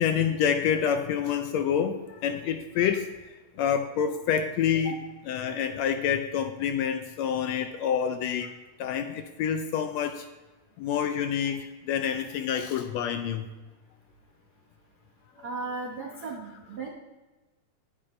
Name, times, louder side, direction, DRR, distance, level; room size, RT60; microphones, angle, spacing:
voice 1, 0.0-3.1 3.6-5.0 5.3-8.5 8.8-10.3 10.8-13.5, left 8 dB, 75° left, 7 dB, 1.7 m, -27 dB
voice 2, 15.4-16.9, right 3 dB, 60° right, -2 dB, 1.0 m, -36 dB
10.5 x 10.0 x 3.1 m, 1.2 s
omnidirectional pair, 3.4 m